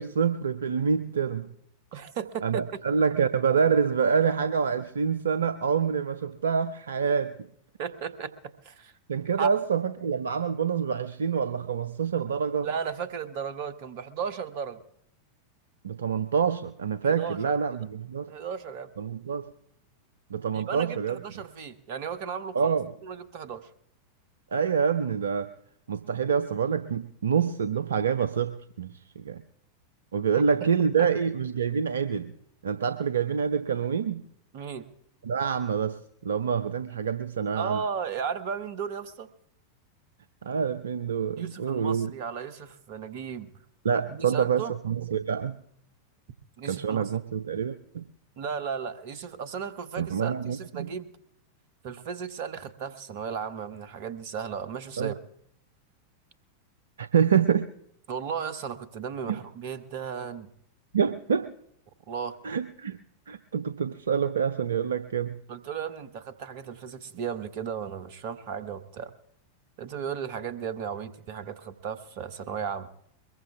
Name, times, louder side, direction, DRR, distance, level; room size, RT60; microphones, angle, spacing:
voice 1, 0.0-1.5 2.4-7.4 9.1-12.7 15.8-18.3 19.0-19.5 20.3-21.2 22.5-22.9 24.5-25.5 25.9-29.4 30.1-32.3 32.6-34.2 35.2-37.8 40.4-42.1 43.8-45.6 46.6-48.0 50.0-50.9 55.0-55.1 57.0-57.7 59.3-59.4 60.9-61.5 62.4-63.0 63.3-65.4, right 6 dB, 70° right, 13 dB, 0.5 m, -26 dB
voice 2, 1.9-2.8 7.8-8.9 9.4-9.5 12.6-14.8 17.0-17.8 18.3-18.9 20.5-22.7 23.0-23.7 30.3-30.4 30.8-31.1 34.5-34.9 37.5-39.3 41.4-43.5 44.1-44.7 46.6-47.1 48.4-51.1 51.8-55.2 58.1-60.5 62.1-62.4 65.5-69.1 69.8-72.9, right 7 dB, 50° right, 14 dB, 1.0 m, -35 dB
22.5 x 21.0 x 2.4 m, 0.73 s
figure-of-eight pair, 90°, 0 cm